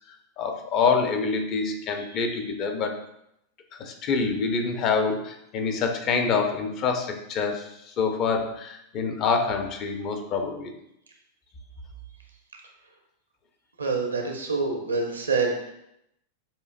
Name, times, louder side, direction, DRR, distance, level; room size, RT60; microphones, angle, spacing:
voice 1, 0.4-3.1 3.7-10.7, left 5 dB, 35° left, 5 dB, 0.6 m, -26 dB
voice 2, 13.8-15.7, right 4 dB, 75° right, 2 dB, 0.7 m, -26 dB
6.6 x 2.5 x 2.5 m, 0.79 s
figure-of-eight pair, 90°, 0 cm